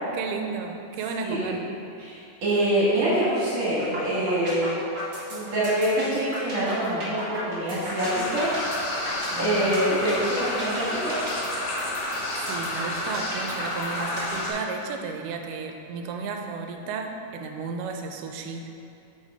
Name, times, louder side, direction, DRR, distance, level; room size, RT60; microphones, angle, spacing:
voice 1, 0.1-1.7 9.3-9.8 12.4-18.7, right 5 dB, 85° right, 4 dB, 2.2 m, -33 dB
voice 2, 1.2-1.6 2.0-4.7 5.3-8.6 9.3-11.2, right 1 dB, 60° right, -8 dB, 2.5 m, -25 dB
sound 1, 3.8-4.0 4.3-14.3, equal, 35° right, 1.7 m, -35 dB
sound 2, 8.0-14.5, left 1 dB, 80° left, 2.8 m, -30 dB
6.5 x 5.9 x 4.8 m, 2.7 s
omnidirectional pair, 3.7 m